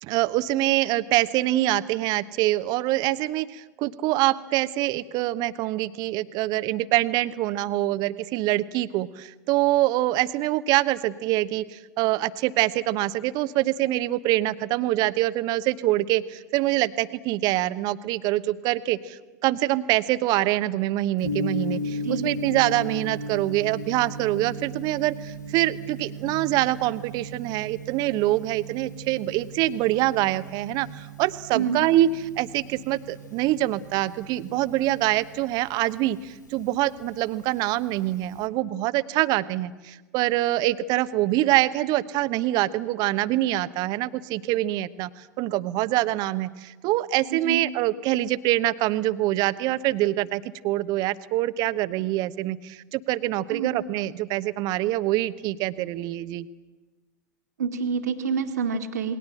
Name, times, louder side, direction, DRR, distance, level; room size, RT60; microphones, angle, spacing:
voice 1, 0.0-56.5, right 16 dB, 45° right, 14 dB, 1.0 m, -25 dB
Gong, 21.2-38.5, equal, 85° left, 2.4 m, -37 dB
voice 2, 57.6-59.2, right 6 dB, 70° right, 6 dB, 2.1 m, -27 dB
28.0 x 21.0 x 7.8 m, 1.2 s
figure-of-eight pair, 80°, 9 cm